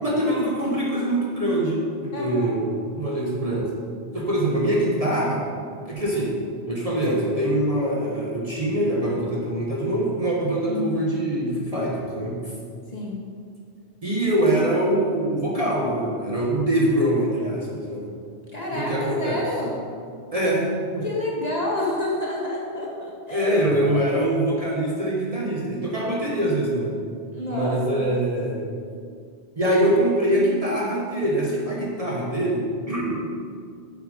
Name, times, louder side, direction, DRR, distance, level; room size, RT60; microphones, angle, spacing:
voice 1, 0.0-3.7 4.1-5.5 5.9-6.3 6.7-12.4 14.0-18.1 18.7-19.5 20.3-21.0 23.3-26.9 27.5-28.7 29.6-33.2, right 1 dB, 35° right, -4 dB, 1.3 m, -24 dB
voice 2, 2.1-2.5 10.7-11.1 12.9-13.3 18.5-19.7 21.0-23.5 23.9-24.2 27.3-28.0, left 1 dB, 35° left, -4 dB, 1.8 m, -29 dB
7.9 x 7.4 x 5.0 m, 2.2 s
omnidirectional pair, 1.2 m